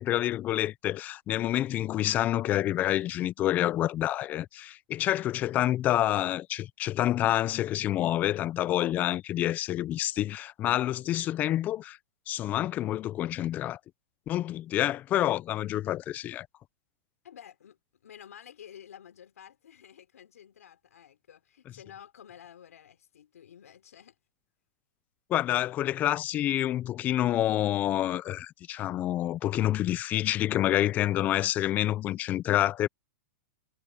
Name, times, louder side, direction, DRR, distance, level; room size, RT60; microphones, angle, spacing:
voice 1, 0.0-12.0 12.3-13.8 14.3-16.5 25.3-32.9, left 13 dB, 20° left, 0.5 m, -28 dB
voice 2, 17.2-24.2, left 9 dB, 90° left, 5.0 m, -51 dB
hypercardioid pair, 155°, 8 cm